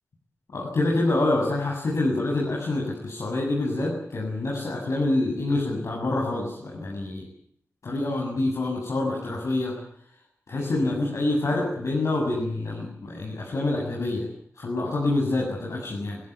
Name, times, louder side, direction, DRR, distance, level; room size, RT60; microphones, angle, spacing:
voice 1, 0.5-7.2 7.8-9.7 10.5-14.2 14.6-16.2, left 2 dB, 70° left, -3 dB, 7.6 m, -26 dB
27.0 x 16.0 x 9.7 m, 0.69 s
wide cardioid pair, 90°, 5 cm